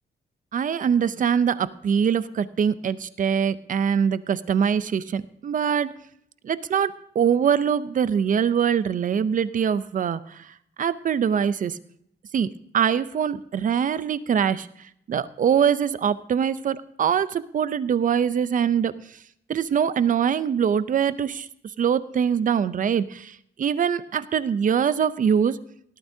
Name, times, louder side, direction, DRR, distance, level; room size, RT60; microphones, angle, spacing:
voice 1, 0.5-5.9 6.4-10.5 10.8-11.8 12.3-14.7 15.1-18.9 19.5-21.5 21.8-25.6, right 7 dB, 45° right, 15 dB, 0.5 m, -23 dB
18.5 x 13.0 x 2.7 m, 0.70 s
wide cardioid pair, 160°, 19 cm